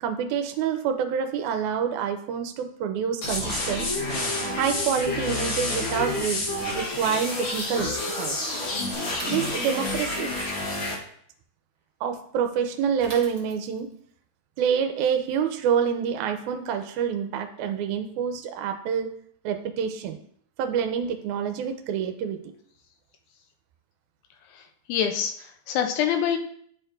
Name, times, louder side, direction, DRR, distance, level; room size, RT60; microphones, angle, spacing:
voice 1, 0.0-3.9 4.5-6.4 6.7-8.4 9.3-10.3 12.0-13.9 14.6-19.1 19.4-20.2 20.6-22.4, right 7 dB, 80° right, 7 dB, 2.0 m, -27 dB
sound 1, 3.2-11.0, left 2 dB, 55° left, 1.4 m, -29 dB
Female singing, 3.7-7.0 8.9-9.0, left 1 dB, 15° left, 0.6 m, -34 dB
Bicycle / Mechanisms, 9.1-10.1 13.0-13.9, right 3 dB, 50° right, 0.9 m, -42 dB
voice 2, 24.5-26.4, left 8 dB, 80° left, 6 dB, 1.9 m, -26 dB
10.5 x 4.5 x 2.6 m, 0.63 s
omnidirectional pair, 3.7 m